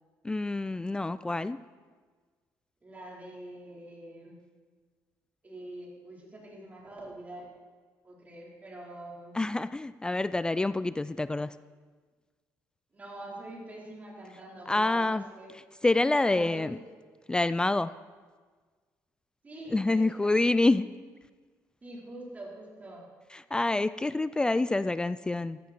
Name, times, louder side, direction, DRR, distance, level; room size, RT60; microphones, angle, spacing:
voice 1, 0.2-1.6 9.3-11.6 14.7-15.2 15.8-16.8 17.3-17.9 19.7-20.9 23.3-25.6, left 2 dB, 15° left, 15 dB, 0.3 m, -27 dB
voice 2, 2.8-4.4 5.4-7.4 8.0-9.4 12.9-15.5 16.2-16.8 19.4-20.4 21.8-23.0, right 1 dB, 25° right, -3 dB, 4.3 m, -45 dB
14.5 x 13.5 x 4.5 m, 1.5 s
cardioid pair, 100°, 6 cm